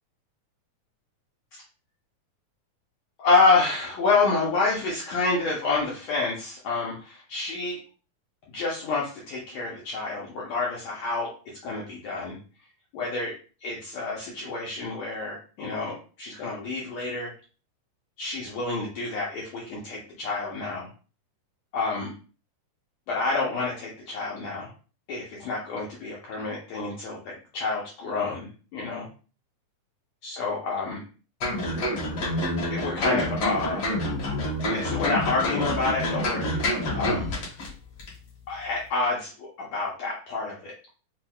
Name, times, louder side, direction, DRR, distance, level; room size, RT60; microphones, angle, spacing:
voice 1, 3.2-7.8 8.5-11.3 11.6-12.4 12.9-13.3 13.6-17.3 18.2-20.9 21.7-22.1 23.1-24.7 25.1-29.1 30.2-31.0 32.7-34.0 34.7-37.3 38.5-40.7, left 3 dB, 80° left, -3 dB, 1.6 m, -28 dB
sound 1, 31.4-37.7 38.0-38.1, left 1 dB, 55° left, 2.0 m, -28 dB
5.8 x 2.0 x 2.2 m, 0.37 s
omnidirectional pair, 3.9 m